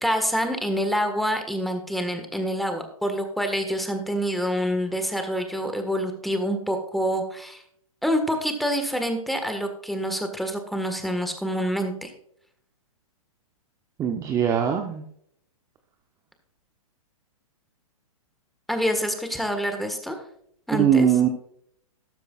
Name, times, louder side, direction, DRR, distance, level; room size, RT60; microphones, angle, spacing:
voice 1, 0.0-7.6 8.0-12.1 18.7-20.2 20.7-21.1, equal, ahead, 6 dB, 1.6 m, -26 dB
voice 2, 14.0-15.0 20.7-21.3, right 8 dB, 20° right, 5 dB, 0.8 m, -21 dB
13.0 x 12.0 x 2.4 m, 0.69 s
hypercardioid pair, 135°, 19 cm